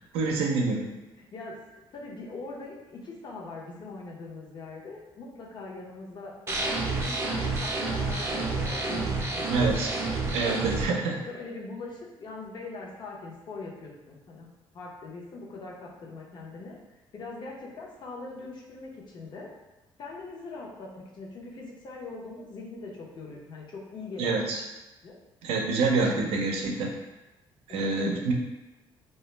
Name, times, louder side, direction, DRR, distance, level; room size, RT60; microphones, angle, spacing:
voice 1, 0.1-0.9 9.5-9.9 10.3-11.2 24.2-24.6 25.4-26.9 27.7-28.3, right 3 dB, 85° right, 0 dB, 0.5 m, -26 dB
voice 2, 1.2-1.6 1.9-9.7 11.1-14.5 14.7-16.8 17.1-19.5 20.0-24.5 25.0-25.2 27.7-28.2, left 3 dB, 50° left, -2 dB, 0.6 m, -41 dB
sound 1, 6.5-10.8, right 3 dB, 30° right, 0.5 m, -29 dB
2.2 x 2.0 x 3.1 m, 1.0 s
cardioid pair, 95°, 10 cm